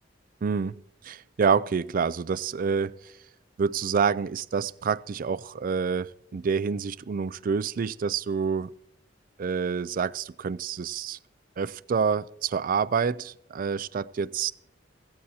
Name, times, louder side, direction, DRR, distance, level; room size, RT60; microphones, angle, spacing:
voice 1, 0.4-3.1 3.6-8.7 9.4-11.2 11.6-14.5, right 6 dB, 45° right, 0.4 m, -27 dB
16.5 x 16.0 x 2.8 m
head